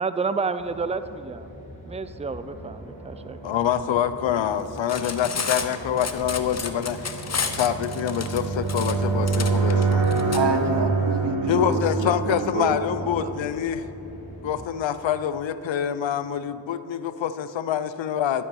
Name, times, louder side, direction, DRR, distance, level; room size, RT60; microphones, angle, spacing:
voice 1, 0.0-1.5 1.9-3.4, right 4 dB, 15° right, 12 dB, 0.5 m, -29 dB
sound 1, 0.6-14.7, equal, 15° left, 3.1 m, -44 dB
sound 2, 2.9-13.7, right 3 dB, 80° right, 2.2 m, -27 dB
voice 2, 3.4-7.0 7.5-10.1 11.5-13.8 14.4-18.4, left 9 dB, 75° left, 13 dB, 0.7 m, -26 dB
Cutlery silverware, 4.8-10.4, left 5 dB, 35° left, 0.9 m, -31 dB
voice 3, 10.3-13.3, right 4 dB, 65° right, 6 dB, 1.3 m, -27 dB
13.5 x 8.4 x 5.4 m, 2.9 s
cardioid pair, 60°, 46 cm